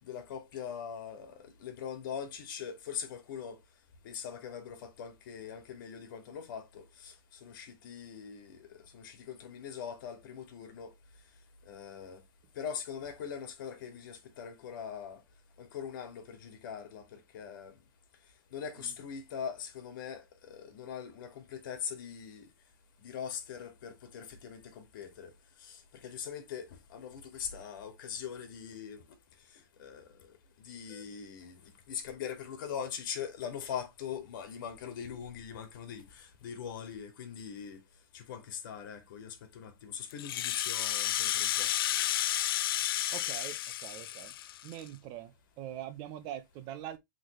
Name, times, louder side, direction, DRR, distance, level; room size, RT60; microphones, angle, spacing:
voice 1, 0.0-3.6 4.0-7.1 7.4-10.9 11.7-12.2 12.6-15.2 15.6-17.7 18.5-22.5 23.0-25.3 25.6-29.0 29.8-30.1 30.6-31.6 31.9-37.8 38.1-41.7, left 7 dB, 65° left, 2.7 m, -42 dB
Rattle (instrument), 40.1-44.9, left 12 dB, 90° left, 0.5 m, -32 dB
voice 2, 43.1-44.3 44.6-47.0, right 11 dB, 35° right, 1.1 m, -43 dB
7.9 x 3.9 x 3.3 m
supercardioid pair, 155°, 12 cm